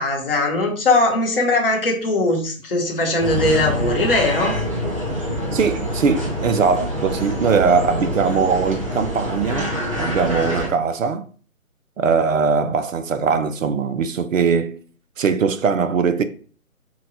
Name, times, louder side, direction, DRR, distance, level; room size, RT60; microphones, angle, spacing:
voice 1, 0.0-4.6, left 2 dB, 40° left, 0.9 m, -20 dB
sound 1, 3.2-10.7, equal, 25° right, 0.6 m, -25 dB
voice 2, 5.5-11.2 12.0-14.8 15.2-16.2, right 5 dB, 65° right, 0.5 m, -20 dB
2.8 x 2.3 x 4.0 m
figure-of-eight pair, 160°, 43 cm